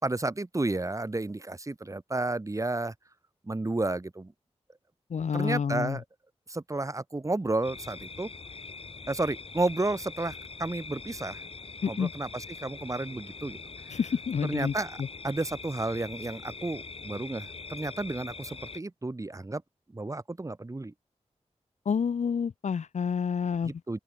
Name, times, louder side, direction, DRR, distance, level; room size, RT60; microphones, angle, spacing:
voice 1, 0.0-2.9 3.4-4.3 5.3-6.0 6.5-8.3 9.1-11.4 11.9-13.6 13.9-14.0 14.4-15.0 15.2-19.6 19.9-20.9 23.6-24.0, right 2 dB, 25° right, 4.8 m, -32 dB
voice 2, 5.1-6.0 11.8-12.1 13.9-15.1 21.8-23.7, left 6 dB, 85° left, 1.4 m, -29 dB
sound 1, 7.6-18.8, left 4 dB, 55° left, 4.0 m, -43 dB
open air
wide cardioid pair, 90°, 12 cm